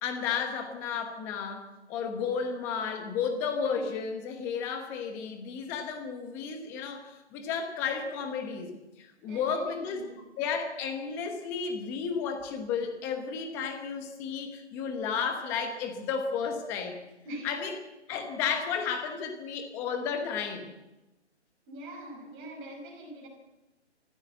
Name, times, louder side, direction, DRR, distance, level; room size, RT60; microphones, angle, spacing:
voice 1, 0.0-10.1 10.4-17.0 17.4-17.8 18.1-20.7, left 6 dB, 5° left, 6 dB, 1.1 m, -33 dB
voice 2, 9.3-10.2 17.2-17.5 21.7-23.3, right 1 dB, 15° right, -1 dB, 5.5 m, -43 dB
24.5 x 14.5 x 7.7 m, 1.0 s
hypercardioid pair, 165°, 34 cm